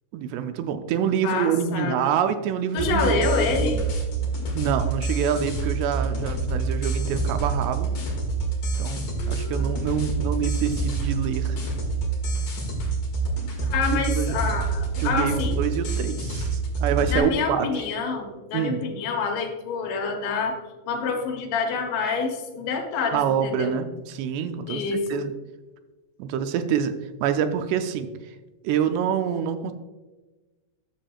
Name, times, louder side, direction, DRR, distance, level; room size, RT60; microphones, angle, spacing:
voice 1, 0.1-3.3 4.6-7.9 8.8-11.6 13.9-14.4 15.0-17.9 18.5-18.9 23.1-25.3 26.2-26.9 27.2-28.4 28.6-29.7, right 8 dB, 80° right, 9 dB, 2.7 m, -26 dB
voice 2, 1.2-2.1 2.7-3.9 9.2-9.6 13.6-15.6 17.1-20.6 20.9-23.8 24.7-25.2, left 5 dB, 85° left, 2 dB, 3.7 m, -27 dB
sound 1, 2.8-17.2, right 4 dB, 55° left, 2.8 m, -27 dB
12.5 x 7.0 x 2.3 m, 1.2 s
omnidirectional pair, 5.0 m